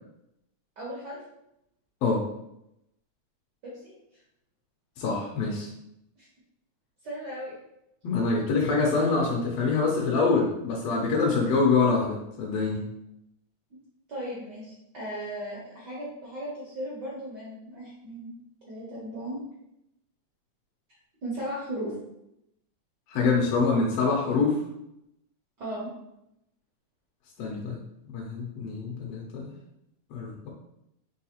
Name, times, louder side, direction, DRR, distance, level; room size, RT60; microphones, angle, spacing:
voice 1, 0.8-1.2 3.6-3.9 6.2-6.3 7.0-7.5 14.1-18.3 18.7-19.4 21.2-21.9 25.6-25.9, right 1 dB, 70° right, -7 dB, 1.0 m, -36 dB
voice 2, 5.0-5.7 8.0-12.8 23.1-24.6 27.4-27.8 28.1-29.5 30.1-30.5, left 4 dB, 75° left, -3 dB, 1.6 m, -25 dB
4.7 x 3.3 x 2.9 m, 0.83 s
omnidirectional pair, 3.3 m